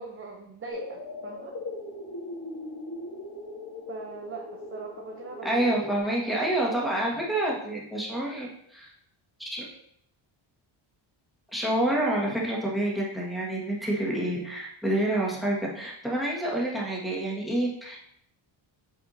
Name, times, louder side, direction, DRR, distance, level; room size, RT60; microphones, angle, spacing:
voice 1, 0.0-1.6 3.9-6.0, right 4 dB, 25° right, 1 dB, 0.7 m, -42 dB
sound 1, 0.7-6.0, left 2 dB, 45° left, 1.4 m, -39 dB
voice 2, 5.4-8.9 9.4-9.6 11.5-18.0, right 1 dB, ahead, -5 dB, 1.7 m, -28 dB
7.9 x 5.0 x 2.7 m, 0.70 s
cardioid pair, 130°, 48 cm